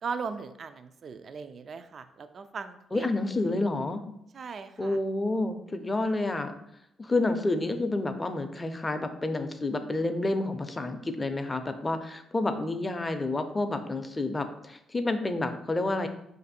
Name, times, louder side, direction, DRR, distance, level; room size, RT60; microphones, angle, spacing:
voice 1, 0.0-3.1 4.3-5.0 5.7-5.9, right 5 dB, 50° right, 9 dB, 0.3 m, -38 dB
voice 2, 2.9-4.0 4.8-6.5 7.0-16.1, left 2 dB, 20° left, 8 dB, 0.5 m, -29 dB
5.0 x 2.6 x 4.1 m, 0.79 s
cardioid pair, 90°, 0 cm